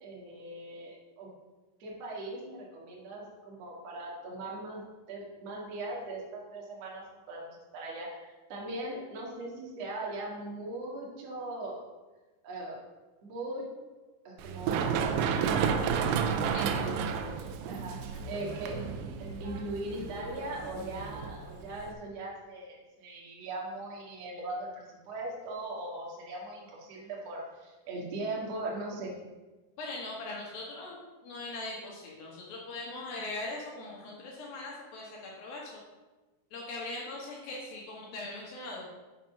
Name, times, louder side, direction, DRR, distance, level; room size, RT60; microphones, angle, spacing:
voice 1, 0.0-1.3 1.8-11.8 12.4-12.8 13.2-13.6 14.2-15.0 16.3-18.9 19.2-29.1, right 2 dB, 50° right, -3 dB, 2.1 m, -40 dB
Run, 14.4-21.9, right 6 dB, 80° right, 2.7 m, -32 dB
voice 2, 16.5-17.1 29.8-35.8 36.5-38.9, left 2 dB, 65° left, -3 dB, 2.6 m, -40 dB
6.6 x 5.8 x 5.7 m, 1.2 s
omnidirectional pair, 5.2 m